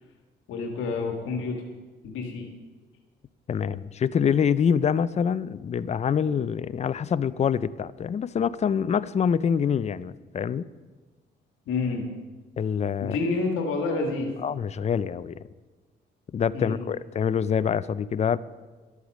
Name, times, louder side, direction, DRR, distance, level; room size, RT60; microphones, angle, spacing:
voice 1, 0.5-1.6 2.0-2.5 11.7-12.1 13.0-14.3 16.5-16.8, left 3 dB, 85° left, 2 dB, 1.6 m, -28 dB
voice 2, 3.5-10.7 12.6-13.2 14.4-15.4 16.3-18.4, left 7 dB, 35° left, 16 dB, 0.4 m, -25 dB
12.0 x 8.3 x 6.3 m, 1.3 s
cardioid pair, 90°, 20 cm